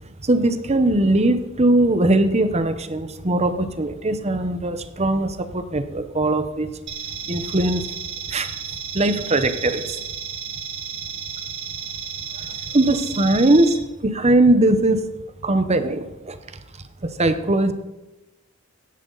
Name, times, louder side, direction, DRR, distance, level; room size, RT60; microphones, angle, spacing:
voice 1, 0.2-6.7 7.3-7.9 8.3-8.5 8.9-10.0 12.3-15.0 15.4-16.6 17.0-17.7, right 2 dB, 30° right, 10 dB, 0.9 m, -20 dB
sound 1, 6.9-13.7, right 7 dB, 60° right, 2.8 m, -33 dB
16.0 x 10.5 x 4.0 m, 1.0 s
head